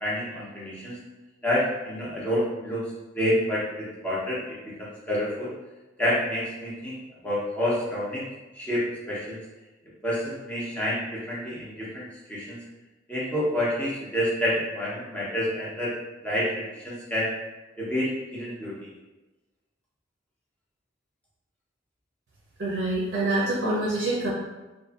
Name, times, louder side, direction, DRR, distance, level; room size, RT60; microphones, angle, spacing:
voice 1, 0.0-1.0 1.4-2.8 3.2-5.5 6.0-7.0 7.2-8.2 8.5-9.4 10.0-11.0 11.3-12.6 13.1-15.9 16.2-17.3 17.8-18.7, equal, 5° left, -8 dB, 0.7 m, -28 dB
voice 2, 22.6-24.3, right 2 dB, 60° right, -6 dB, 0.5 m, -26 dB
2.6 x 2.5 x 2.3 m, 1.1 s
head